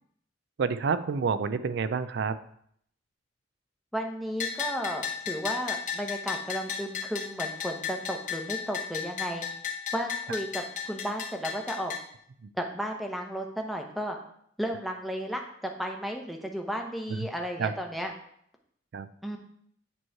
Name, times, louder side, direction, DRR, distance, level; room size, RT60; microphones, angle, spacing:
voice 1, 0.6-2.3 17.1-17.3 17.6-17.7 18.9-19.1, right 5 dB, 65° right, 13 dB, 0.4 m, -28 dB
voice 2, 3.9-9.5 9.9-11.9 12.5-14.2 14.6-18.1 19.2-19.4, equal, ahead, 2 dB, 0.7 m, -34 dB
Bell, 4.4-12.0, left 7 dB, 40° left, 1.0 m, -35 dB
8.7 x 3.1 x 4.5 m, 0.67 s
head